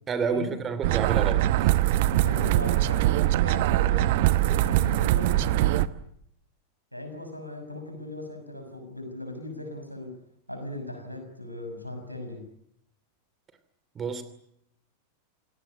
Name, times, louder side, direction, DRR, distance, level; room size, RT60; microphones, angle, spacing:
voice 1, 0.1-1.5 13.9-14.2, right 5 dB, 25° right, 12 dB, 2.8 m, -29 dB
sound 1, 0.8-5.9, right 15 dB, 50° right, 1.0 m, -22 dB
voice 2, 2.1-3.1 3.4-4.1 4.4-5.7 6.9-10.1 10.5-12.5, left 1 dB, 90° right, 7 dB, 6.2 m, -38 dB
28.5 x 18.0 x 9.8 m, 0.74 s
figure-of-eight pair, 90°, 0 cm